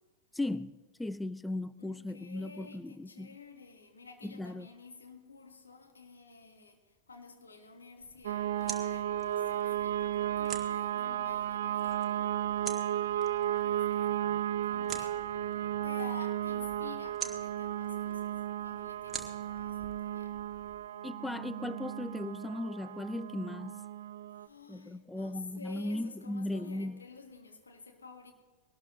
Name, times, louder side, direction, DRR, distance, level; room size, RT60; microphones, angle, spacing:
voice 1, 0.3-3.4 4.2-4.7 21.0-23.8 24.7-27.0, left 2 dB, 5° left, 15 dB, 0.4 m, -37 dB
voice 2, 1.8-6.8 7.1-12.3 13.4-15.2 15.8-18.3 18.6-20.3 24.4-28.3, left 4 dB, 75° left, 3 dB, 2.0 m, -51 dB
sound 1, 8.0-20.8, right 5 dB, 20° right, 1.9 m, -48 dB
sound 2, 8.2-24.5, right 11 dB, 60° right, 0.6 m, -34 dB
21.0 x 18.0 x 3.2 m, 1.4 s
figure-of-eight pair, 90°, 0 cm